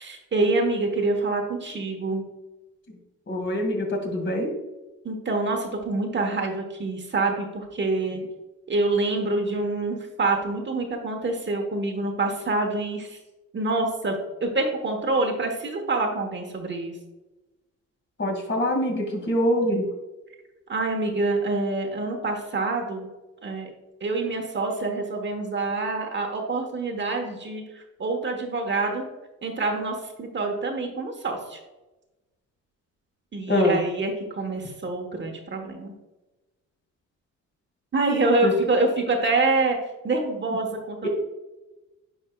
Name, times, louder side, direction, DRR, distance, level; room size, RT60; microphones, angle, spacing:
voice 1, 0.0-2.2 5.0-8.2 8.7-13.2 13.5-16.9 20.7-23.1 23.4-23.7 24.0-29.0 29.4-31.6 33.3-35.9 37.9-39.8 40.0-41.1, right 3 dB, 40° right, 3 dB, 1.2 m, -26 dB
voice 2, 3.3-4.5 18.2-19.9 33.5-33.8 38.4-38.5, left 1 dB, 40° left, 1 dB, 2.1 m, -24 dB
10.5 x 4.5 x 2.3 m, 1.1 s
cardioid pair, 90°, 30 cm